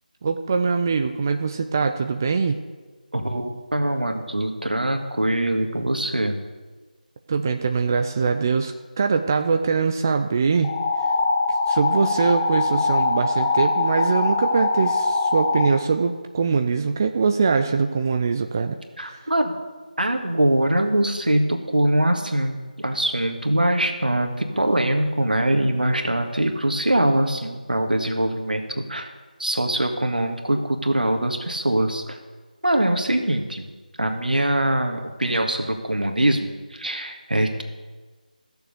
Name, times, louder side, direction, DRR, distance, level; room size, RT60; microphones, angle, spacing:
voice 1, 0.2-2.6 7.3-10.7 11.7-18.8 19.1-19.3, right 5 dB, 25° right, 6 dB, 0.4 m, -22 dB
voice 2, 3.1-6.4 19.0-19.5 20.0-29.1 29.4-32.2 32.6-33.7 34.0-37.6, right 1 dB, 75° right, 4 dB, 1.9 m, -23 dB
sound 1, 10.6-15.7, left 3 dB, 10° left, 0.8 m, -22 dB
15.0 x 7.0 x 6.6 m, 1.4 s
figure-of-eight pair, 165°, 5 cm